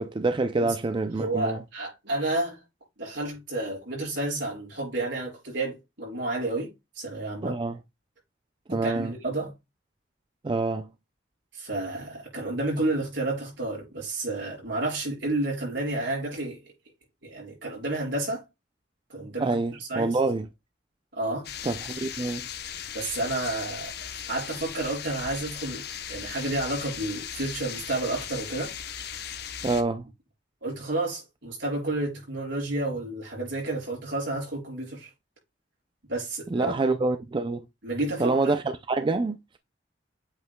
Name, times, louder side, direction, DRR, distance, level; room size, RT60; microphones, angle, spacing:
voice 1, 0.0-1.6 7.4-7.8 8.7-9.1 10.4-10.9 19.4-20.5 21.7-22.5 29.6-30.0 36.5-37.6 38.2-39.6, right 3 dB, 25° right, 0.4 m, -26 dB
voice 2, 1.2-2.6 3.0-7.6 8.7-9.5 11.5-16.6 17.2-18.5 19.1-20.2 21.1-21.5 22.9-23.9 24.3-28.7 30.6-35.1 36.1-36.7 37.8-38.5, right 2 dB, 80° right, 4.7 m, -31 dB
sound 1, 21.4-29.8, left 9 dB, 60° left, 0.8 m, -37 dB
8.1 x 5.5 x 2.2 m
head